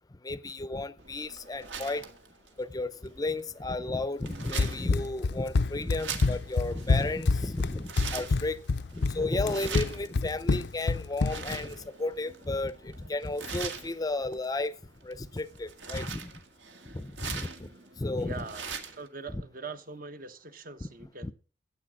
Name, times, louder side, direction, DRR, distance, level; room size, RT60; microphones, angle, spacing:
voice 1, 0.2-2.0 2.6-8.6 8.9-14.7 15.0-16.3 16.9-17.7 18.0-18.4 19.3-19.4 21.2-21.3, left 2 dB, 20° left, 0.6 m, -33 dB
sound 1, 1.0-19.1, right 6 dB, 75° right, 1.9 m, -43 dB
Run, 4.6-11.6, left 3 dB, 60° left, 0.5 m, -27 dB
voice 2, 18.2-21.3, right 4 dB, 45° right, 1.1 m, -42 dB
13.0 x 8.5 x 6.2 m
head